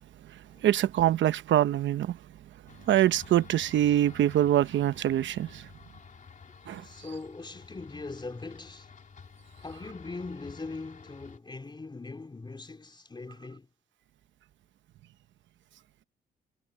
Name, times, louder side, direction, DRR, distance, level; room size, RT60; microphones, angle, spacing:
voice 1, 0.6-2.2 2.9-5.6 6.7-6.8, right 12 dB, 70° right, 1.0 m, -24 dB
sound 1, 2.7-11.4, left 5 dB, 40° left, 3.6 m, -51 dB
voice 2, 6.8-8.9 9.6-13.7, left 3 dB, 25° left, 3.7 m, -41 dB
cardioid pair, 90°, 20 cm